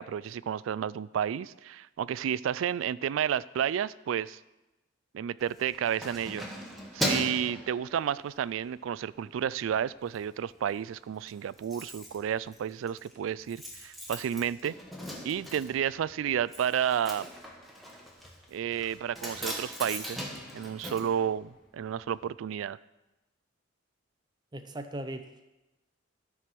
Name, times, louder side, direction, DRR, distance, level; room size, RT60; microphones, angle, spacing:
voice 1, 0.0-4.4 5.1-6.4 6.9-14.8 15.2-17.3 18.5-20.3 20.5-22.8, right 9 dB, 85° right, 20 dB, 0.3 m, -31 dB
Keys jangling, 5.4-8.5 8.9-9.2 9.5-10.2 10.5-10.6 10.8-10.9 11.1-21.9 22.2-22.3, equal, ahead, 1.3 m, -39 dB
voice 2, 24.5-25.5, right 1 dB, 20° right, 8 dB, 0.7 m, -39 dB
13.0 x 4.7 x 6.0 m, 1.0 s
head